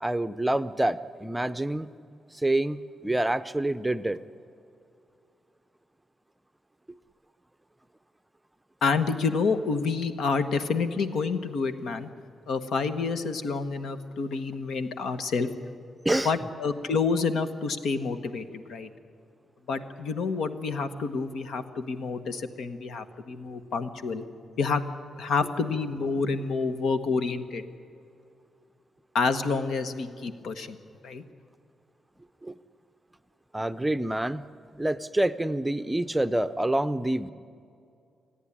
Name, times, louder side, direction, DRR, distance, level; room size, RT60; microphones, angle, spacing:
voice 1, 0.0-1.9 2.3-4.2 16.0-16.3 32.4-32.5 33.5-34.4 34.8-37.3, right 1 dB, 10° right, 12 dB, 0.6 m, -27 dB
voice 2, 8.8-12.1 12.5-15.5 16.2-18.9 19.7-24.2 24.6-24.8 25.2-27.6 29.1-30.8 31.0-31.2, left 4 dB, 80° left, 10 dB, 1.2 m, -28 dB
28.5 x 10.0 x 10.0 m, 2.5 s
cardioid pair, 90°, 0 cm